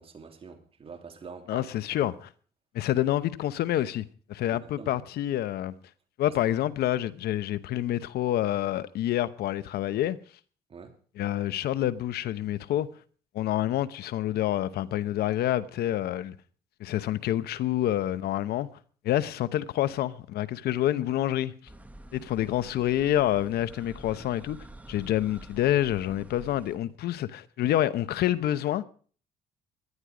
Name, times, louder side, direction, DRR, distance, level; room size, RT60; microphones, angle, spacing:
voice 1, 0.0-1.6 2.0-2.1 4.5-5.0 6.3-6.4 10.7-10.9 19.1-19.2, right 5 dB, 35° right, 3.1 m, -45 dB
voice 2, 1.5-2.1 2.7-5.7 6.2-10.2 11.2-12.9 13.3-16.4 16.8-18.7 19.0-21.5 22.1-28.8, left 13 dB, 70° left, 0.9 m, -27 dB
sound 1, 21.7-26.8, right 1 dB, 10° right, 1.7 m, -48 dB
18.0 x 12.0 x 5.0 m
cardioid pair, 110°, 17 cm